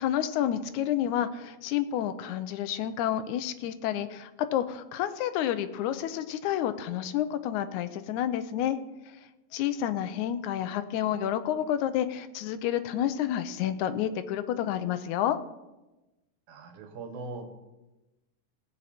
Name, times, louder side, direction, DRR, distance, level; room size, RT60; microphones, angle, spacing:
voice 1, 0.0-8.8 9.5-15.4, left 11 dB, 80° left, 11 dB, 2.0 m, -29 dB
voice 2, 16.5-17.5, right 3 dB, 75° right, 6 dB, 2.8 m, -40 dB
17.5 x 8.6 x 4.3 m, 1.0 s
omnidirectional pair, 3.5 m